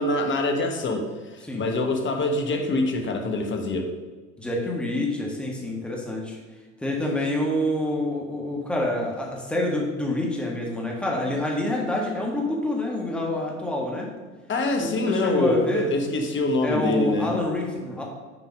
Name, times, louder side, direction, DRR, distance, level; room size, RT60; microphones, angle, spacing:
voice 1, 0.0-3.9 14.5-17.3, left 2 dB, 30° left, 4 dB, 1.3 m, -25 dB
voice 2, 4.4-6.4 6.8-14.1 14.8-15.9 16.6-18.0, left 1 dB, 5° left, -2 dB, 1.6 m, -27 dB
6.6 x 4.7 x 5.2 m, 1.3 s
hypercardioid pair, 80°, 40 cm